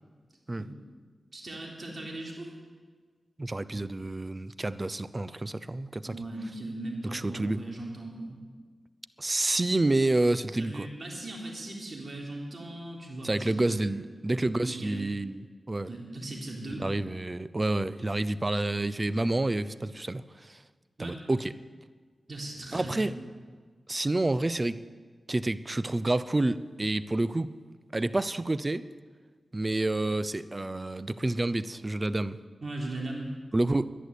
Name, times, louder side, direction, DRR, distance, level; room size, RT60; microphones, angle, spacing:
voice 1, 1.3-2.5 6.0-8.4 10.6-14.1 14.6-15.0 15.9-16.8 21.0-21.2 22.3-23.2 32.6-33.3, right 2 dB, 55° right, -1 dB, 3.7 m, -38 dB
voice 2, 3.4-6.2 7.1-7.6 9.2-10.9 13.2-15.9 16.8-20.6 21.0-21.5 22.7-23.1 23.9-24.8 25.3-27.5 27.9-28.8 29.5-32.4 33.5-34.0, right 2 dB, 35° right, 16 dB, 0.6 m, -29 dB
11.0 x 10.5 x 8.3 m, 1.5 s
cardioid pair, 40°, 0 cm